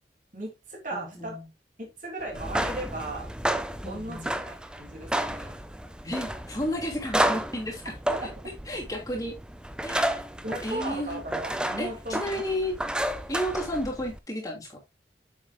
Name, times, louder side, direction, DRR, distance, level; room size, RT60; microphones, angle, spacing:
voice 1, 0.3-1.4 1.8-3.3 3.8-5.6 8.1-8.3 10.4-12.4, right 1 dB, 45° right, 2.8 m, -36 dB
voice 2, 0.9-1.5 3.8-4.3 6.0-7.9 8.2-8.3 8.7-9.3 9.8-10.2 10.6-11.3 11.8-12.8 13.3-14.8, equal, 20° left, 2.8 m, -32 dB
sound 1, 2.3-14.2, right 1 dB, 5° right, 0.5 m, -31 dB
8.2 x 7.2 x 2.2 m
head